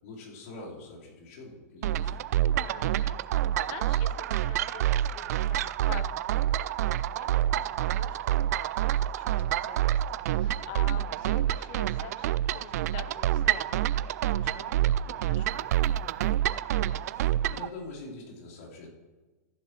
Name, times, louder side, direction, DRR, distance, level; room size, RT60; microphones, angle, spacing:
voice 1, 0.0-2.2 17.2-18.9, left 2 dB, 70° left, -5 dB, 4.4 m, -44 dB
sound 1, 1.8-17.7, right 12 dB, 70° right, 0.4 m, -27 dB
voice 2, 2.7-10.0 10.3-15.7, left 9 dB, 45° left, 9 dB, 1.1 m, -47 dB
15.0 x 10.5 x 3.2 m, 1.3 s
supercardioid pair, 155°, 9 cm